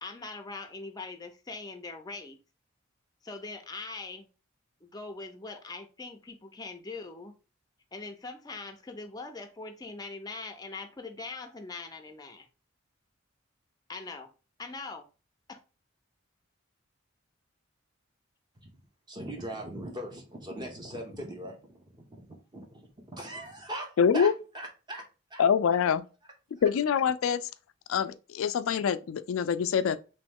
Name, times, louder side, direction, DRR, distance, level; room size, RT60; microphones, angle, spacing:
voice 1, 0.0-2.4 3.2-4.3 4.8-7.3 7.9-12.5 13.9-14.3 14.6-15.0 15.5-15.6, left 3 dB, 20° left, 0.5 m, -41 dB
voice 2, 19.1-25.8 26.2-26.8 28.4-28.5, right 1 dB, 20° right, 0.8 m, -41 dB
voice 3, 24.0-24.3 25.4-26.0 26.6-27.4 27.9-30.0, left 7 dB, 80° left, 0.3 m, -25 dB
3.1 x 3.0 x 3.4 m
head